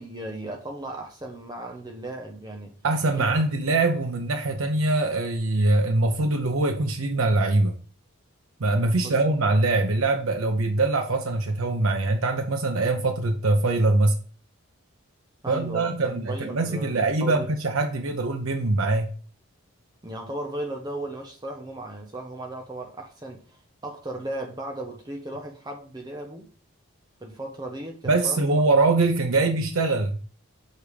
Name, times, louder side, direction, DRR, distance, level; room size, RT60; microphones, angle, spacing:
voice 1, 0.0-2.8 3.1-3.3 8.9-9.2 15.4-17.5 20.0-26.5 27.2-28.6, right 1 dB, 20° right, 0.7 m, -36 dB
voice 2, 2.8-7.8 8.6-14.2 15.5-19.1 28.1-30.2, right 2 dB, 70° right, 0.7 m, -23 dB
6.7 x 3.5 x 4.8 m
head